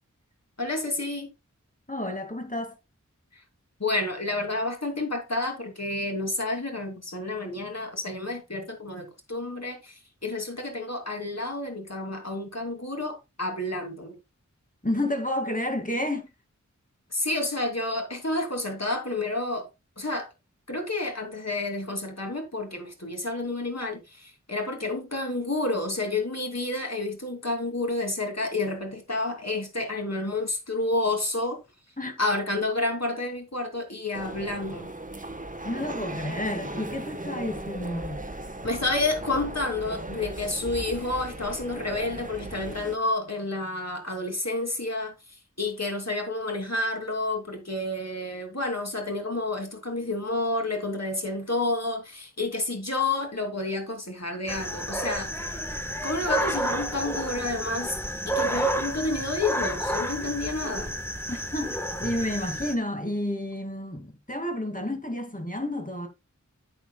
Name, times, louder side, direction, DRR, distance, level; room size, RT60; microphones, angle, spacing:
voice 1, 0.6-1.3 3.8-9.9 10.2-14.1 17.1-19.7 20.0-20.3 20.7-31.6 32.2-34.9 38.6-45.1 45.6-55.3 56.0-57.9 58.3-60.9, left 2 dB, 60° left, 2.9 m, -30 dB
voice 2, 1.9-2.8 14.8-16.3 32.0-32.1 35.6-38.2 61.3-66.1, left 1 dB, 25° left, 2.3 m, -30 dB
sound 1, 34.1-43.0, right 2 dB, 25° right, 1.2 m, -37 dB
sound 2, 54.5-62.7, right 1 dB, 10° left, 1.3 m, -30 dB
12.0 x 8.2 x 2.3 m
wide cardioid pair, 40°, 30 cm